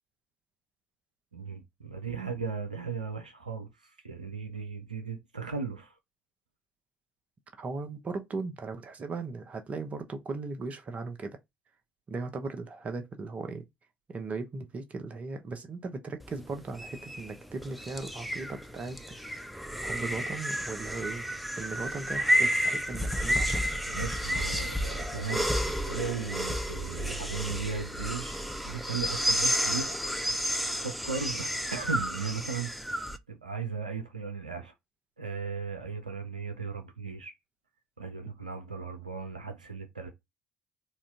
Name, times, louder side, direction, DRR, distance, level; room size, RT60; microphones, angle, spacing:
voice 1, 1.3-6.0 23.9-30.0 30.7-32.7 33.3-34.7 35.2-37.3 38.0-40.1, right 5 dB, 90° right, 0.5 m, -37 dB
voice 2, 7.6-11.4 12.1-13.7 14.1-19.0 19.8-21.3 21.5-23.8, right 3 dB, 35° right, 0.9 m, -37 dB
sound 1, 16.2-33.2, equal, ahead, 0.5 m, -31 dB
4.1 x 2.5 x 3.5 m
figure-of-eight pair, 55°, 4 cm